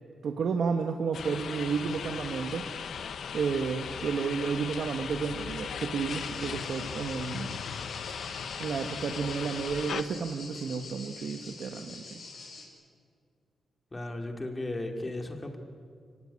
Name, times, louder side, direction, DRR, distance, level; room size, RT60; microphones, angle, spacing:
voice 1, 0.2-2.7 3.3-7.6 8.6-12.2, right 5 dB, 60° right, 5 dB, 1.3 m, -32 dB
sound 1, 1.1-10.0, left 7 dB, 70° left, 1.1 m, -38 dB
sound 2, 6.1-12.7, left 3 dB, 50° left, 6.4 m, -45 dB
voice 2, 13.9-15.6, left 1 dB, 15° left, 4 dB, 2.6 m, -35 dB
29.0 x 17.5 x 9.8 m, 2.2 s
wide cardioid pair, 165°, 0 cm